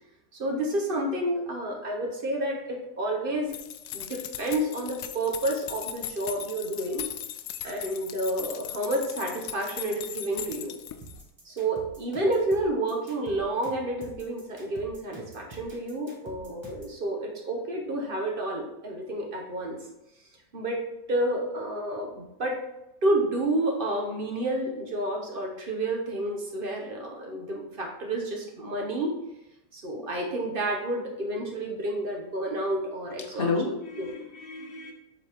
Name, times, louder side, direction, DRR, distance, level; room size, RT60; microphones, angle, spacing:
voice 1, 0.3-3.6 3.9-7.1 7.6-10.7 11.4-19.8 20.5-20.8 21.1-22.6 23.0-29.1 29.7-33.5 34.0-34.1, right 1 dB, 40° right, 1 dB, 0.9 m, -30 dB
sound 1, 3.5-11.2, left 10 dB, 75° left, 0.8 m, -39 dB
sound 2, 11.0-17.0, right 2 dB, 20° right, 1.1 m, -47 dB
voice 2, 33.3-34.9, left 3 dB, 40° left, 1 dB, 0.9 m, -31 dB
7.4 x 4.1 x 3.5 m, 0.90 s
omnidirectional pair, 1.9 m